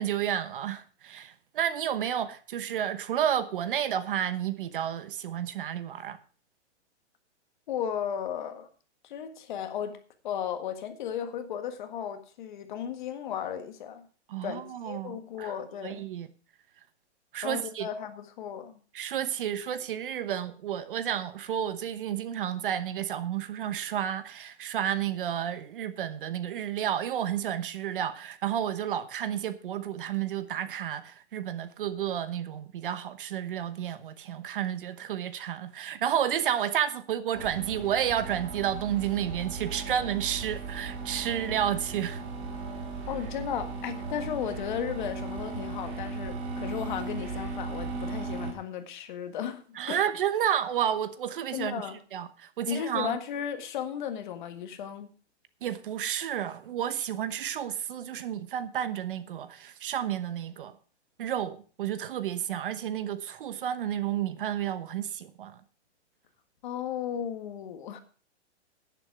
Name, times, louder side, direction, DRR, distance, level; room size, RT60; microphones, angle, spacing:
voice 1, 0.0-6.2 14.3-15.5 15.8-16.3 17.3-17.9 18.9-42.2 49.8-53.2 55.6-60.7 61.2-65.6, right 10 dB, 50° right, 1.0 m, -31 dB
voice 2, 7.7-8.7 9.0-10.0 10.2-14.1 14.4-16.0 17.4-18.8 43.1-50.0 51.5-52.0 52.7-55.1 66.6-68.0, left 9 dB, 45° left, 1.7 m, -35 dB
sound 1, 37.3-48.5, right 3 dB, 20° right, 1.9 m, -37 dB
11.0 x 9.7 x 4.8 m
hypercardioid pair, 170°, 35 cm